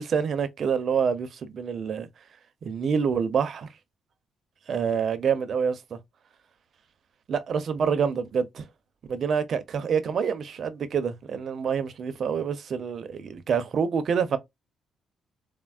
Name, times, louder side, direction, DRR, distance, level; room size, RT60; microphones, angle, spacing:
voice 1, 0.0-2.1 2.6-3.7 4.7-6.0 7.3-8.7 9.1-14.4, right 6 dB, 55° right, 0.6 m, -27 dB
4.3 x 2.0 x 2.4 m
cardioid pair, 90°, 0 cm